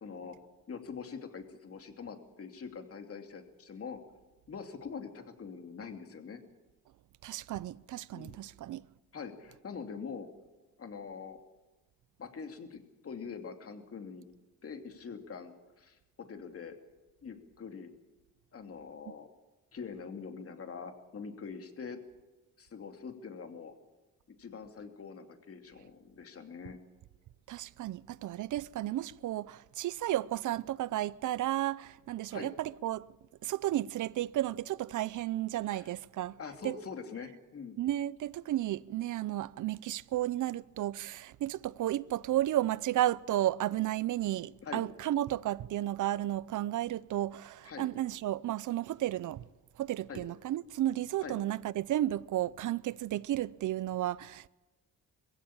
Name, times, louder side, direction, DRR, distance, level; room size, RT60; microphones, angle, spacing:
voice 1, 0.0-0.4 0.7-4.0 4.5-6.4 8.1-8.3 9.1-10.3 10.8-11.4 12.2-14.3 14.6-16.8 17.2-17.9 18.5-19.3 19.7-22.0 22.6-23.7 24.4-26.8 32.3-32.5 35.7-35.9 36.4-37.8 44.6-44.8 47.6-47.9 50.1-50.2 51.2-51.4, left 5 dB, 45° left, 2.8 m, -44 dB
voice 2, 7.2-8.8 27.5-33.1 33.4-36.4 36.6-36.8 37.8-49.4 49.8-54.5, right 13 dB, 70° right, 0.7 m, -33 dB
21.5 x 16.0 x 8.7 m
cardioid pair, 105°, 32 cm